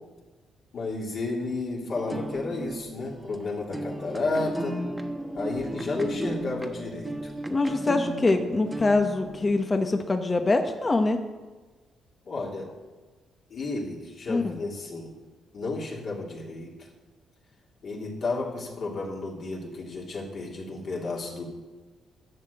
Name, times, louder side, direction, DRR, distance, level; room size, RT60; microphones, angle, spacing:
voice 1, 0.7-4.8 5.3-7.4 12.3-12.7 13.5-15.1 15.5-16.7 17.8-21.5, left 3 dB, 55° left, -2 dB, 2.7 m, -32 dB
sound 1, 1.9-9.7, right 1 dB, 15° right, 1.0 m, -35 dB
voice 2, 7.5-11.2 14.3-14.6, left 2 dB, 25° left, 6 dB, 1.0 m, -24 dB
11.0 x 6.7 x 7.9 m, 1.3 s
cardioid pair, 90°, 0 cm